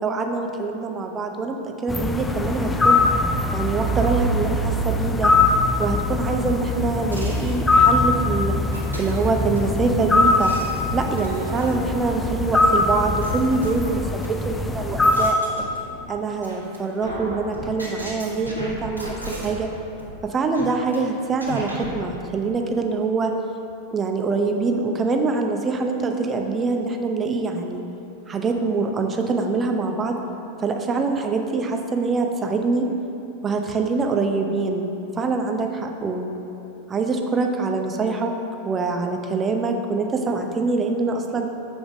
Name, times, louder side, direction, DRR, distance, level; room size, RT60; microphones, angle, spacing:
voice 1, 0.0-3.0 3.5-5.3 5.8-8.6 9.0-10.5 10.9-15.4 16.1-19.7 20.2-23.3 23.9-27.8 28.3-30.2 30.6-32.9 33.4-34.9 35.1-36.3 36.9-38.3 38.6-41.5, right 3 dB, 20° right, 4 dB, 0.7 m, -24 dB
sound 1, 1.9-15.3, left 2 dB, 10° left, 0.4 m, -22 dB
sound 2, 7.1-7.9 8.7-9.6 10.2-12.0 12.6-12.7 13.2-14.3 14.8-16.1 16.4-16.8 17.0-19.7 20.0-20.2 20.5-21.0 21.4-22.0, right 1 dB, 90° right, 1.4 m, -35 dB
7.1 x 5.0 x 4.9 m, 2.8 s
figure-of-eight pair, 90°, 0 cm